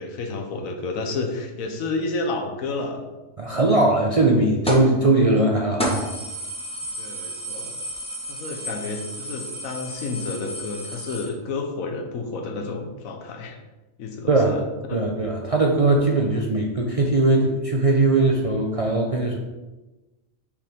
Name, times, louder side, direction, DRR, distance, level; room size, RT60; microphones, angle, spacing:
voice 1, 0.0-3.0 7.0-7.8 8.3-13.6 14.0-14.6 14.9-15.0, left 3 dB, 90° left, 4 dB, 1.2 m, -30 dB
voice 2, 3.4-6.1 14.3-14.5 14.9-19.4, right 2 dB, 50° right, 1 dB, 0.4 m, -20 dB
sound 1, 4.7-5.0 5.4-5.5 5.8-11.2, equal, 5° left, 1.0 m, -31 dB
6.8 x 5.0 x 3.5 m, 1.1 s
omnidirectional pair, 1.4 m